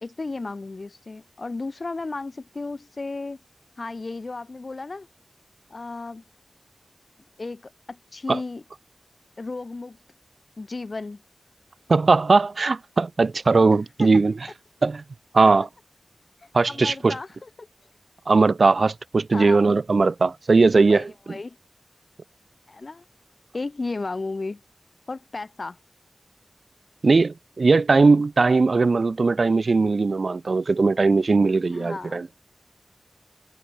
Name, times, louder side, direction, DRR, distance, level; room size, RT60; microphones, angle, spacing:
voice 1, 0.0-3.4 3.8-5.1 5.7-6.2 7.4-8.6 9.4-10.0 10.6-11.2 14.0-14.1 16.7-17.7 19.3-19.6 20.9-21.6 22.7-23.0 23.5-24.6 25.1-25.8 31.7-32.3, left 3 dB, 65° left, 1.0 m, -34 dB
voice 2, 11.9-14.3 14.8-15.0 15.3-15.7 16.5-17.2 18.3-21.4 27.0-32.3, right 3 dB, 75° right, 0.4 m, -19 dB
cardioid pair, 40°, 0 cm